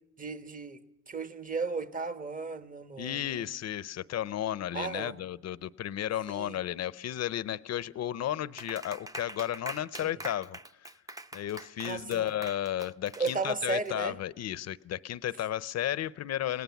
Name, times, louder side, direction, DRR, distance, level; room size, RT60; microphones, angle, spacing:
voice 1, 0.2-3.5 4.7-5.2 6.3-6.6 9.8-10.2 11.8-12.3 13.1-14.2, right 4 dB, 25° right, 1.4 m, -35 dB
voice 2, 3.0-10.6 11.3-16.6, left 11 dB, 55° left, 0.7 m, -33 dB
Clapping, 8.6-13.9, right 1 dB, 10° right, 0.8 m, -44 dB
27.5 x 18.0 x 7.1 m
cardioid pair, 90°, 30 cm